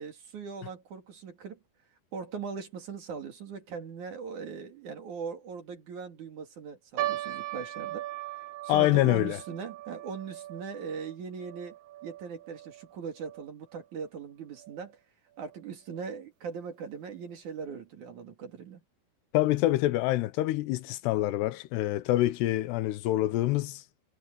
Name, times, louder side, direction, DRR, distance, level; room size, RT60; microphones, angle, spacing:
voice 1, 0.0-1.6 2.1-8.0 8.6-11.8 12.0-15.0 15.4-18.8, right 6 dB, 50° right, 3.3 m, -40 dB
sound 1, 7.0-13.5 13.7-13.8 14.6-14.9 15.5-15.6 15.9-16.1, right 14 dB, 90° right, 1.6 m, -39 dB
voice 2, 8.7-9.4 19.3-23.8, left 16 dB, 85° left, 2.9 m, -26 dB
omnidirectional pair, 4.8 m